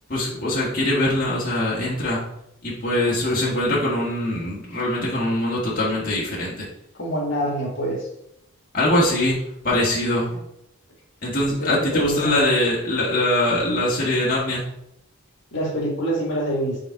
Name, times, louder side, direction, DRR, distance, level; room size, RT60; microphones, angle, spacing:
voice 1, 0.1-2.2 2.6-6.7 8.7-9.4 9.6-10.3 11.2-14.6, left 1 dB, 45° left, -7 dB, 1.6 m, -22 dB
voice 2, 7.0-8.1 11.6-12.4 15.5-16.8, right 1 dB, 65° left, -2 dB, 1.8 m, -25 dB
5.3 x 3.8 x 4.7 m, 0.79 s
head